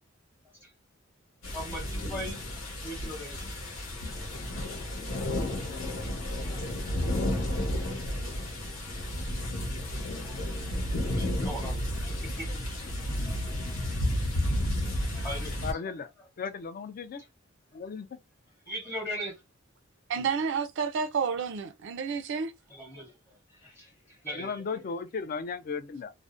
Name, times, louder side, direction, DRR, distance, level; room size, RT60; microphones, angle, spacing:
sound 1, 1.4-15.7, left 1 dB, 80° left, 0.9 m, -32 dB
voice 1, 1.5-2.4 2.8-3.4 6.5-6.7 7.1-7.7 10.2-10.5 11.1-12.8 13.2-13.9 14.8-15.7 18.7-19.4 22.7-23.1 23.5-24.8, equal, 15° left, 0.7 m, -40 dB
voice 2, 15.6-16.1 16.4-17.2 17.7-18.2 24.3-26.1, left 5 dB, 45° left, 0.4 m, -35 dB
voice 3, 20.1-22.5, right 6 dB, 65° right, 0.4 m, -30 dB
2.5 x 2.0 x 2.4 m
head